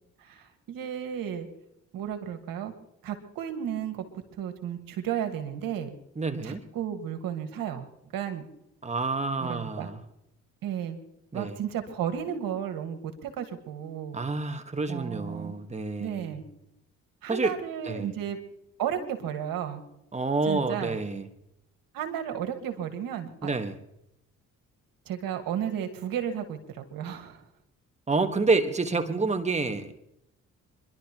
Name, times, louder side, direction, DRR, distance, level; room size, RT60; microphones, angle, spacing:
voice 1, 0.2-1.5 1.9-2.7 3.0-4.0 4.4-5.9 6.4-7.8 8.1-8.4 9.4-9.9 10.6-11.0 11.3-14.2 14.9-15.6 16.0-16.4 17.2-18.4 18.8-19.8 20.4-21.0 21.9-23.5 25.1-27.4, right 9 dB, 80° right, 6 dB, 1.8 m, -33 dB
voice 2, 6.2-6.6 8.8-10.0 11.3-11.6 14.1-16.4 17.3-17.5 17.9-18.1 20.1-21.3 23.4-23.8 28.1-29.9, right 3 dB, 20° right, 7 dB, 1.5 m, -28 dB
27.0 x 11.5 x 3.0 m, 0.81 s
supercardioid pair, 60°, 34 cm